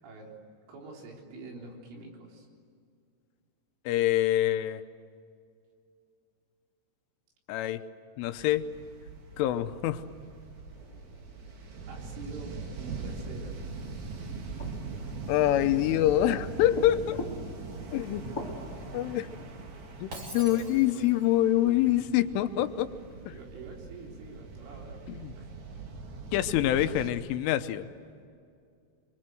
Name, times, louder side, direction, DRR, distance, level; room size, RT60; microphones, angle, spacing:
voice 1, 0.0-0.4 0.7-2.5 11.9-13.6 14.8-16.0 20.3-21.2 21.9-22.1 23.2-25.0 25.4-25.6, right 3 dB, 80° right, 0 dB, 6.2 m, -46 dB
voice 2, 3.9-4.8 7.5-7.8 8.2-8.7 9.4-10.0 15.3-17.2 17.9-18.2 18.9-19.3 20.0-22.9 23.3-23.4 25.1-25.3 26.3-27.9, left 13 dB, 85° left, 10 dB, 3.4 m, -26 dB
sound 1, 8.2-27.1, right 4 dB, 50° right, 2.9 m, -42 dB
sound 2, 10.7-13.3 14.6-22.4 26.6-27.3, left 3 dB, 30° left, 1.8 m, -46 dB
Shatter, 20.1-21.3, right 1 dB, 35° right, 4.0 m, -43 dB
26.0 x 23.5 x 7.8 m, 2.4 s
omnidirectional pair, 5.6 m